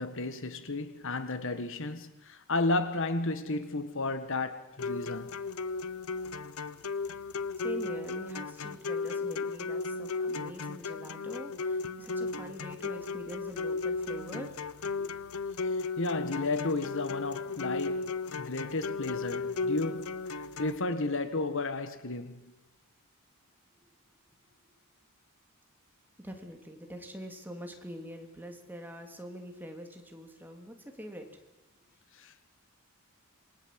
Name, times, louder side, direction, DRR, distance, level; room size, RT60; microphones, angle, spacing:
voice 1, 0.0-5.3 15.6-20.1 20.6-22.5 32.1-32.4, left 2 dB, 60° left, 1.7 m, -33 dB
sound 1, 4.8-20.8, left 4 dB, 80° left, 0.9 m, -35 dB
voice 2, 7.1-14.6 15.0-15.1 26.2-31.3, equal, 10° right, 3.0 m, -44 dB
27.0 x 22.0 x 7.8 m
head